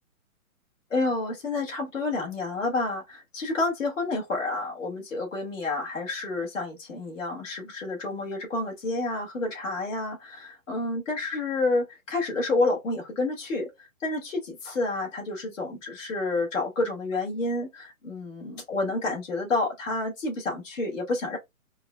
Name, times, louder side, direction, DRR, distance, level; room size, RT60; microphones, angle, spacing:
voice 1, 0.9-21.4, left 2 dB, 55° left, 2.1 m, -29 dB
4.5 x 2.3 x 2.3 m
hypercardioid pair, 175°, 44 cm